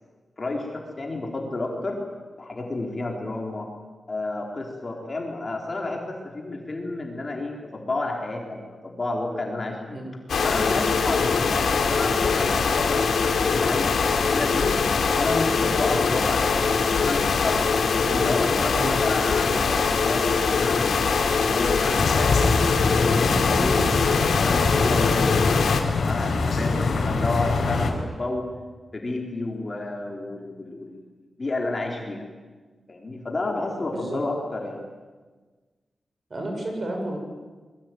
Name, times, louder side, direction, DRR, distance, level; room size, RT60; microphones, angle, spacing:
voice 1, 0.4-2.0 2.4-3.7 4.1-10.0 10.4-14.7 15.2-28.5 28.9-31.0 31.4-32.2 32.9-34.8, left 2 dB, 25° left, 0 dB, 4.0 m, -31 dB
sound 1, 10.3-25.8, left 5 dB, 85° left, 3.1 m, -22 dB
sound 2, 22.0-27.9, left 3 dB, 65° left, 4.7 m, -24 dB
voice 2, 33.9-34.2 36.3-37.2, right 1 dB, 35° right, 2 dB, 6.9 m, -31 dB
26.0 x 22.0 x 9.4 m, 1.3 s
wide cardioid pair, 175°, 0 cm